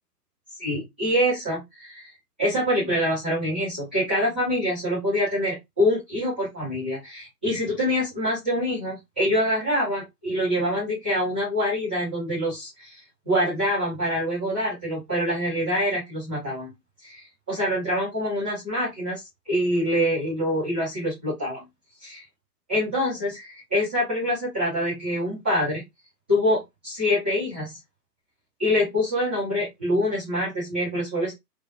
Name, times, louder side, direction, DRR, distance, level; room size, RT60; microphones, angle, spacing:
voice 1, 0.6-2.1 2.4-16.7 17.0-21.6 22.0-22.2 22.7-25.8 26.3-27.8 28.6-31.3, equal, 5° right, -15 dB, 0.5 m, -25 dB
3.2 x 2.2 x 2.6 m, 0.19 s
figure-of-eight pair, 135°, 49 cm